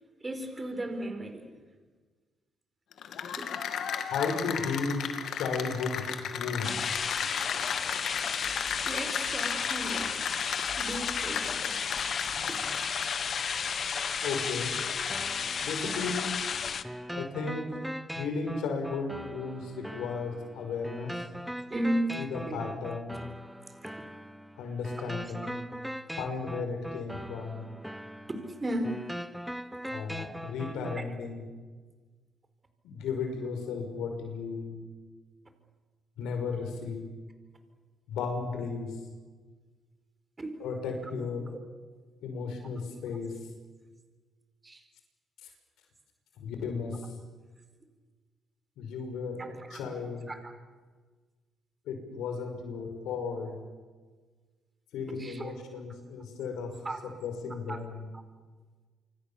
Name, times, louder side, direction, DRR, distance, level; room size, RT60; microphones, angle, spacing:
voice 1, 0.2-1.5 3.4-3.5 8.8-10.2 10.8-11.8 12.5-12.8 21.7-22.1 22.5-22.6 25.4-25.5 28.3-29.0 30.8-31.1 40.4-40.6 44.6-44.8 49.4-49.8 50.3-50.5 55.1-55.5 56.8-57.0 57.7-57.8, right 1 dB, 25° right, 7 dB, 4.5 m, -35 dB
Cheering / Applause, 2.9-13.3, left 8 dB, 70° left, 2.4 m, -36 dB
voice 2, 4.1-6.0 6.3-7.0 14.2-14.8 15.6-16.3 17.1-17.8 18.1-21.2 22.1-23.2 24.6-25.6 26.1-27.7 29.9-31.4 32.8-34.9 36.2-37.1 38.1-39.0 40.6-41.5 42.2-43.3 45.4-45.5 46.4-47.1 48.8-50.3 51.9-53.5 54.9-56.7 57.2-58.1, left 5 dB, 85° left, 5 dB, 5.6 m, -35 dB
sound 1, 6.6-16.8, left 6 dB, 50° left, 1.4 m, -32 dB
sound 2, 15.1-31.1, equal, ahead, 1.0 m, -41 dB
27.0 x 24.5 x 7.1 m, 1.4 s
cardioid pair, 90°, 0 cm